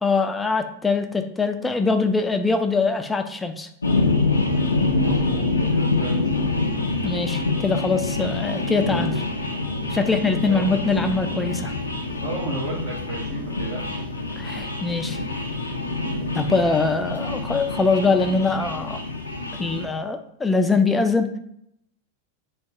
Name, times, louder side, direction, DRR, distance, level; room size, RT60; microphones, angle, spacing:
voice 1, 0.0-3.7 7.0-9.2 9.9-11.7 14.4-15.2 16.3-19.0 19.6-21.3, left 4 dB, 10° left, 7 dB, 0.3 m, -23 dB
sound 1, 3.8-19.9, left 2 dB, 80° left, 0.4 m, -26 dB
voice 2, 5.0-6.5 10.5-10.8 12.2-14.1, right 2 dB, 55° right, -4 dB, 0.7 m, -33 dB
2.7 x 2.2 x 3.5 m, 0.72 s
figure-of-eight pair, 90°, 0 cm